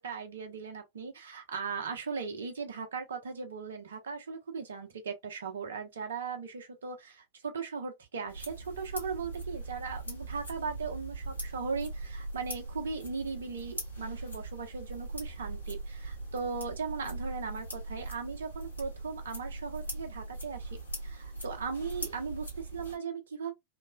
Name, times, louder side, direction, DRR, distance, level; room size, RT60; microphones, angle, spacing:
voice 1, 0.0-20.8 21.0-23.5, right 5 dB, 65° right, 0.7 m, -38 dB
sound 1, 8.3-23.0, right 2 dB, 85° left, 1.2 m, -41 dB
3.1 x 2.1 x 2.2 m
figure-of-eight pair, 90°, 0 cm